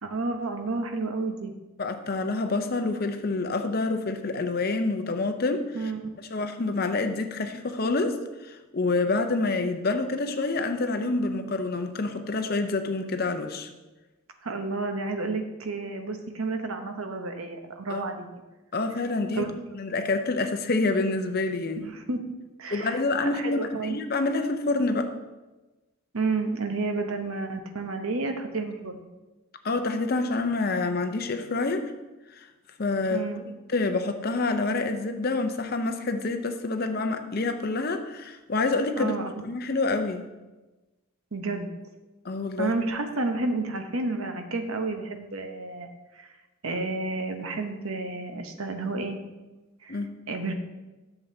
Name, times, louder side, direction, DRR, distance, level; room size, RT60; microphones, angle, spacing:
voice 1, 0.0-1.5 5.7-6.1 14.4-18.3 19.3-19.5 19.9-20.0 21.8-22.2 22.6-24.0 26.1-29.0 33.1-33.4 39.0-39.4 41.3-41.7 42.6-45.9 46.2-46.3 46.6-49.2 49.8-50.0 50.3-50.5, right 3 dB, 75° right, 5 dB, 0.9 m, -31 dB
voice 2, 1.8-5.9 6.3-8.2 8.4-13.7 17.9-18.0 18.7-19.5 19.7-21.9 22.7-25.1 29.6-31.9 32.4-32.5 32.8-33.3 33.7-39.1 39.4-40.3 42.2-42.7 49.9-50.1, left 3 dB, 45° left, 7 dB, 0.6 m, -27 dB
11.0 x 7.1 x 2.8 m, 1.1 s
head